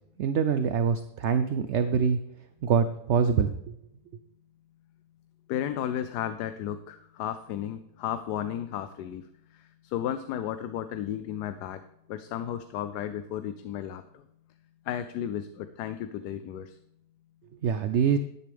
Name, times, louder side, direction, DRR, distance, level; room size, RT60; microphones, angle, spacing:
voice 1, 0.2-2.2 2.6-3.5 17.6-18.2, right 6 dB, 65° right, 10 dB, 0.7 m, -24 dB
voice 2, 5.5-9.2 9.9-11.8 12.1-14.0 14.9-16.7, left 10 dB, 90° left, 10 dB, 1.2 m, -33 dB
11.0 x 10.0 x 3.5 m, 0.81 s
omnidirectional pair, 1.7 m